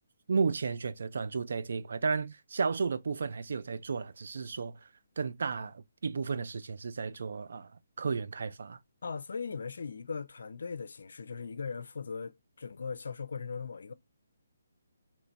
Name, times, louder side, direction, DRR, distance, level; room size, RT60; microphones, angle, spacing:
voice 1, 0.3-4.9 5.2-7.7 8.0-8.8, right 5 dB, 70° right, 0.4 m, -33 dB
voice 2, 9.0-13.9, left 5 dB, 75° left, 0.4 m, -39 dB
3.0 x 2.1 x 4.0 m
hypercardioid pair, 160°, 0 cm